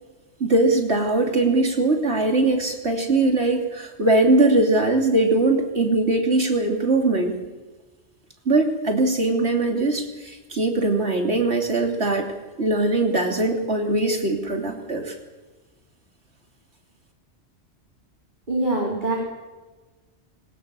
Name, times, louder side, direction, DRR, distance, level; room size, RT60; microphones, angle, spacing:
voice 1, 0.4-7.4 8.4-12.3 12.6-15.1, right 2 dB, 70° right, 2 dB, 3.3 m, -21 dB
voice 2, 18.5-19.2, right 2 dB, 45° right, -3 dB, 4.2 m, -23 dB
22.5 x 19.5 x 6.9 m, 1.2 s
omnidirectional pair, 1.2 m